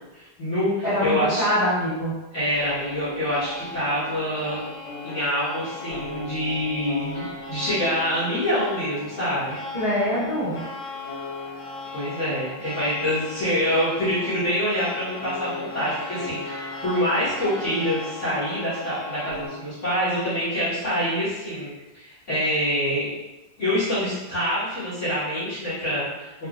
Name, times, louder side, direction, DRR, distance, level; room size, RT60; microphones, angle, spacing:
voice 1, 0.1-1.4 2.3-4.6 5.0-9.6 11.9-23.1 23.6-26.5, equal, 40° left, -13 dB, 1.7 m, -26 dB
voice 2, 0.8-2.1 9.7-10.6, equal, 20° right, -13 dB, 1.3 m, -24 dB
sound 1, 2.5-19.5, left 3 dB, 75° left, 1.8 m, -37 dB
4.1 x 2.7 x 2.4 m, 1.0 s
omnidirectional pair, 2.1 m